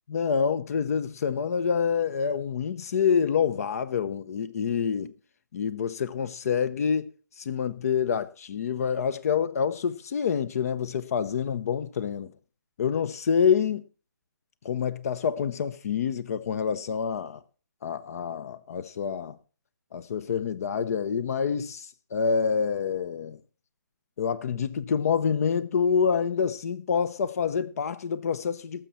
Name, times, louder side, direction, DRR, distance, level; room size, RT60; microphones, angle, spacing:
voice 1, 0.1-5.1 5.5-7.1 7.4-12.3 12.8-13.8 14.6-17.4 17.8-19.4 19.9-23.4 24.2-28.9, left 6 dB, 45° left, 0.8 m, -27 dB
18.5 x 7.2 x 4.3 m
figure-of-eight pair, 145°, 11 cm